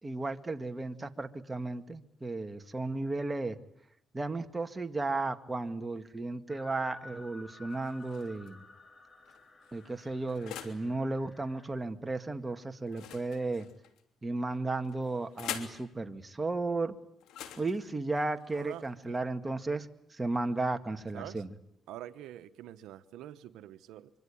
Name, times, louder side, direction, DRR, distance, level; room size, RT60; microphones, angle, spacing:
voice 1, 0.0-3.6 4.1-8.6 9.7-13.7 14.2-16.9 17.6-21.5, right 3 dB, 20° right, 7 dB, 2.2 m, -34 dB
sound 1, 6.5-11.7, left 2 dB, 30° left, 4.0 m, -53 dB
sound 2, 7.7-8.5 9.2-10.9 12.9-14.0 14.8-15.8 17.2-19.2, left 10 dB, 90° left, 3.1 m, -45 dB
voice 2, 18.5-19.2 21.1-21.4 21.9-24.1, right 12 dB, 90° right, 11 dB, 1.1 m, -46 dB
25.5 x 24.5 x 8.7 m, 0.76 s
cardioid pair, 90°, 0 cm